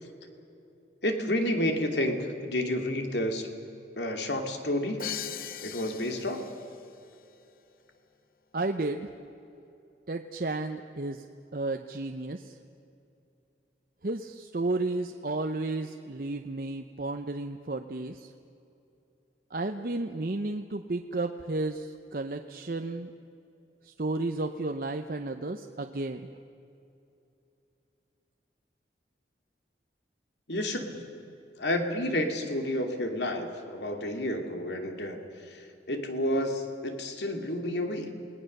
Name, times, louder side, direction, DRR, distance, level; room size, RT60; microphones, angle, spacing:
voice 1, 1.0-3.5 4.0-5.1 5.6-6.5 30.5-30.9 31.6-35.2 35.5-38.1, left 1 dB, 80° left, 4 dB, 2.7 m, -30 dB
Crash cymbal, 5.0-6.9, left 10 dB, 50° left, 0.8 m, -39 dB
voice 2, 8.5-9.1 10.1-11.2 11.5-12.5 14.0-18.3 19.5-23.1 23.9-26.2, right 2 dB, 50° right, 5 dB, 0.7 m, -32 dB
28.5 x 19.0 x 6.7 m, 2.7 s
head